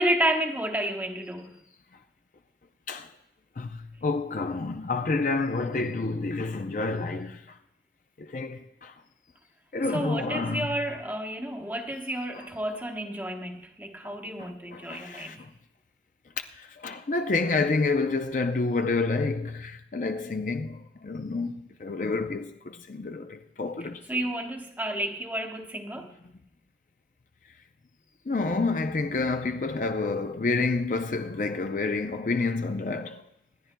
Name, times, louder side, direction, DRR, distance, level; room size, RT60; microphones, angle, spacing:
voice 1, 0.0-1.5 9.9-15.3 24.1-26.1, right 1 dB, 10° right, 0.9 m, -30 dB
voice 2, 3.6-7.6 8.2-8.9 9.7-10.7 12.3-12.4 14.0-15.5 16.5-24.0 28.3-33.2, left 3 dB, 45° left, 0.5 m, -29 dB
26.5 x 10.5 x 2.2 m
head